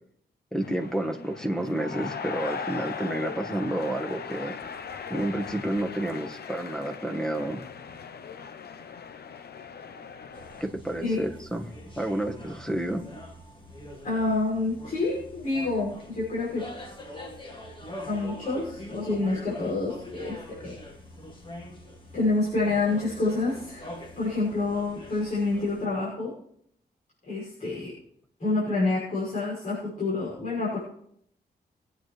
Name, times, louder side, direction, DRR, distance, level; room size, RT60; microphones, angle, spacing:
voice 1, 0.5-4.6 5.1-7.6 10.6-11.7 12.0-13.0, right 1 dB, 5° left, 1.3 m, -30 dB
sound 1, 0.6-10.6, left 6 dB, 65° left, 0.8 m, -39 dB
sound 2, 10.3-25.9, left 1 dB, 30° left, 1.8 m, -44 dB
voice 2, 14.0-16.7 18.0-20.8 22.1-26.3 27.3-27.9 28.4-30.8, left 3 dB, 50° left, 6.2 m, -28 dB
22.5 x 9.3 x 3.3 m
wide cardioid pair, 155°, 17 cm